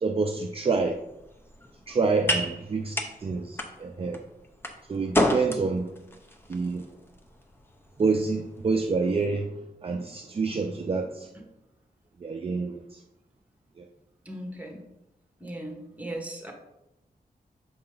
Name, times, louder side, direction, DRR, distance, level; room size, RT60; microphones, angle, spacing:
voice 1, 0.0-1.0 1.9-2.9 3.2-4.2 4.9-5.9 6.5-6.8 8.0-9.5 9.8-11.3 12.2-12.8 13.8-13.9, right 4 dB, 35° right, 3 dB, 0.4 m, -27 dB
sound 1, 0.7-9.1, left 1 dB, 15° left, 0.7 m, -33 dB
voice 2, 14.2-14.8 15.4-16.5, right 1 dB, 10° right, 1 dB, 1.3 m, -38 dB
6.6 x 4.9 x 3.8 m, 0.90 s
wide cardioid pair, 135°, 16 cm